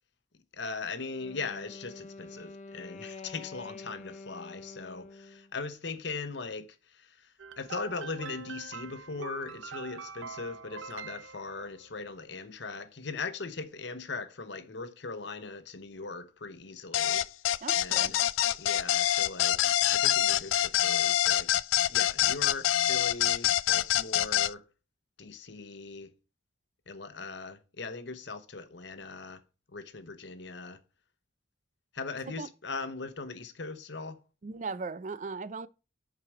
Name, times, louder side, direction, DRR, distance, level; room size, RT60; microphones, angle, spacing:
voice 1, 0.5-17.2 17.7-18.2 18.5-19.6 19.9-21.5 21.9-24.6 25.2-26.1 26.9-29.4 29.7-30.8 31.9-34.2, left 4 dB, 65° left, 0.9 m, -40 dB
Wind instrument woodwind instrument, 1.0-5.5, left 3 dB, 35° left, 0.9 m, -47 dB
sound 1, 7.4-12.0, right 6 dB, 85° right, 0.6 m, -44 dB
sound 2, 16.9-24.5, left 13 dB, 85° left, 0.3 m, -25 dB
voice 2, 17.6-18.1 32.3-32.5 34.4-35.7, right 4 dB, 40° right, 0.4 m, -38 dB
7.7 x 4.8 x 4.8 m
head